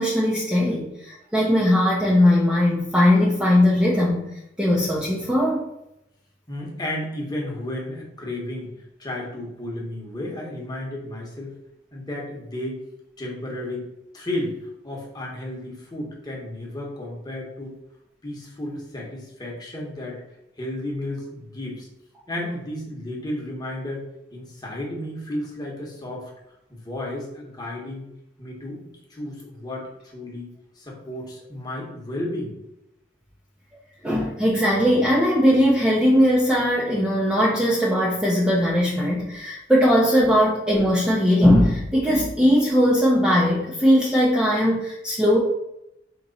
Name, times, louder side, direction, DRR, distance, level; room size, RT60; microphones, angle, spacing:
voice 1, 0.0-4.3 4.6-5.7 34.0-45.4, equal, 5° right, -6 dB, 0.5 m, -19 dB
voice 2, 6.5-11.5 11.9-12.8 13.2-13.9 14.1-17.8 18.2-20.2 20.6-21.9 22.3-24.0 24.3-26.3 26.7-28.1 28.4-28.8 29.1-32.5 40.3-40.4, left 1 dB, 20° left, -3 dB, 1.0 m, -33 dB
4.0 x 2.9 x 4.0 m, 0.85 s
head